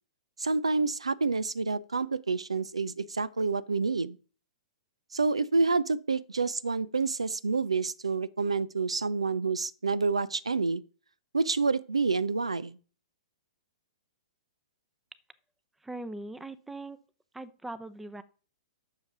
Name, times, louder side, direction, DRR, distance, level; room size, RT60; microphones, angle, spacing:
voice 1, 0.4-4.2 5.1-10.8 11.3-12.8, right 4 dB, 75° right, 0.5 m, -28 dB
voice 2, 15.8-17.0 17.3-18.2, right 2 dB, 5° right, 0.7 m, -40 dB
10.5 x 6.8 x 5.8 m
figure-of-eight pair, 110°, 3 cm